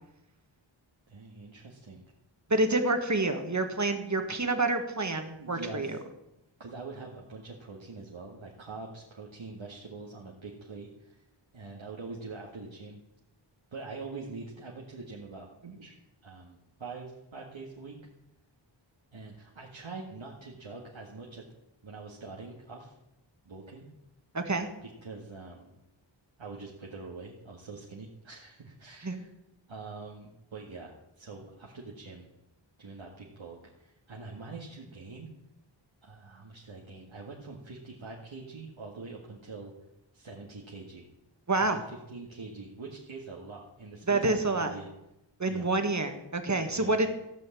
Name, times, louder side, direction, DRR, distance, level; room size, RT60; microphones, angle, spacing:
voice 1, 1.1-2.0 5.4-6.0 6.6-11.2 11.5-13.0 13.7-15.9 16.2-17.9 19.1-21.5 21.8-23.0 23.4-23.9 24.8-25.8 26.4-29.3 29.7-32.3 32.8-35.3 36.0-39.7 40.1-41.0 41.6-44.9 45.5-45.7 46.7-47.0, right 3 dB, 75° right, -2 dB, 1.8 m, -44 dB
voice 2, 2.5-5.9 24.3-24.7 29.0-29.2 41.5-41.8 44.1-44.7 45.4-47.1, right 2 dB, 35° right, 6 dB, 1.6 m, -28 dB
15.0 x 5.5 x 8.4 m, 0.90 s
wide cardioid pair, 60°, 47 cm